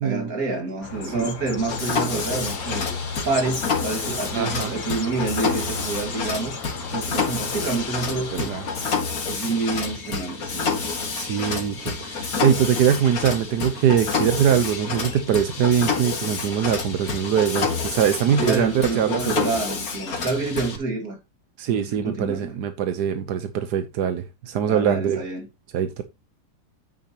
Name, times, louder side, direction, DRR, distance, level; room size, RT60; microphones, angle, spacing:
voice 1, 0.0-2.9 3.2-6.6 6.9-8.5 9.3-10.7 18.4-21.2 21.7-22.5 24.7-25.5, right 3 dB, 65° right, 2.7 m, -28 dB
sound 1, 0.8-9.0, left 4 dB, 85° left, 2.0 m, -35 dB
Mechanisms, 1.7-20.8, left 5 dB, 65° left, 2.2 m, -28 dB
voice 2, 4.3-4.7 8.3-8.7 11.1-19.5 21.6-25.2 25.7-26.0, right 9 dB, 90° right, 1.5 m, -23 dB
9.5 x 9.1 x 2.9 m
omnidirectional pair, 1.7 m